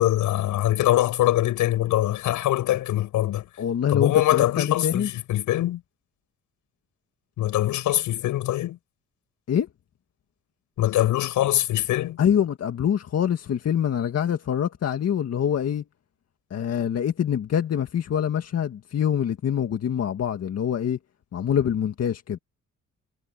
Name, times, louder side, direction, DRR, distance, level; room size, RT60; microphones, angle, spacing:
voice 1, 0.0-3.5 3.9-5.8 7.4-8.8 10.8-12.2, left 14 dB, 85° left, 7.8 m, -23 dB
voice 2, 3.6-5.1 9.5-9.7 12.2-15.8 16.5-21.0 21.3-22.4, left 9 dB, 55° left, 2.0 m, -25 dB
cardioid pair, 90°, 30 cm